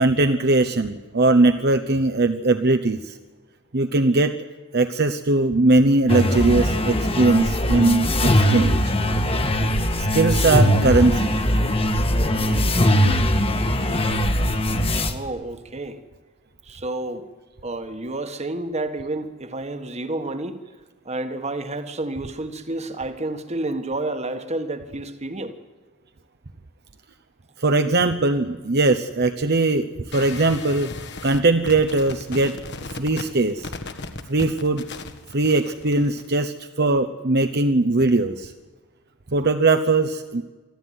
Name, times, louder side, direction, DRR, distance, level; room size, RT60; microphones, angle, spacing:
voice 1, 0.0-3.2 3.7-4.3 4.7-8.9 10.0-11.4 27.6-30.9 31.2-32.6 32.9-33.7 34.3-34.8 35.3-38.5 39.3-40.4, right 2 dB, 55° right, 0.9 m, -20 dB
sound 1, 6.1-15.1, equal, 30° left, 1.5 m, -20 dB
voice 2, 15.1-16.0 16.6-17.3 17.6-20.6 21.0-25.6, right 2 dB, 30° right, 1.6 m, -30 dB
sound 2, 30.1-36.3, left 3 dB, 55° left, 1.7 m, -36 dB
25.0 x 14.0 x 9.5 m
head